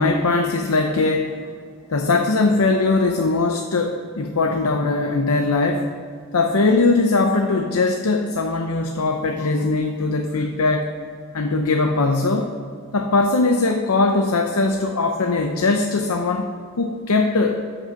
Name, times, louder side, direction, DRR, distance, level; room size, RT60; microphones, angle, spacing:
voice 1, 0.0-1.3 1.9-5.9 6.3-10.9 11.3-12.5 12.9-16.5 16.8-17.6, left 3 dB, 85° left, 4 dB, 0.7 m, -20 dB
12.5 x 5.6 x 5.1 m, 2.2 s
head